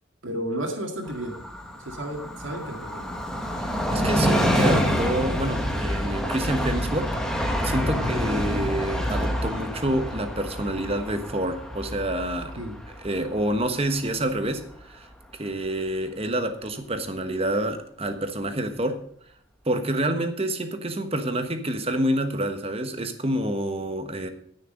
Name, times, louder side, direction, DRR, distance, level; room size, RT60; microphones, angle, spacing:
voice 1, 0.2-1.4 1.8-3.0 7.9-8.1 12.6-12.8, right 1 dB, 80° right, 1 dB, 2.1 m, -32 dB
Train, 1.1-14.4 14.7-14.8, equal, 5° left, 1.3 m, -27 dB
voice 2, 3.6-7.1 7.6-12.5 13.0-19.0 19.6-24.3, right 1 dB, 30° right, 8 dB, 1.2 m, -28 dB
13.5 x 6.6 x 6.5 m, 0.63 s
head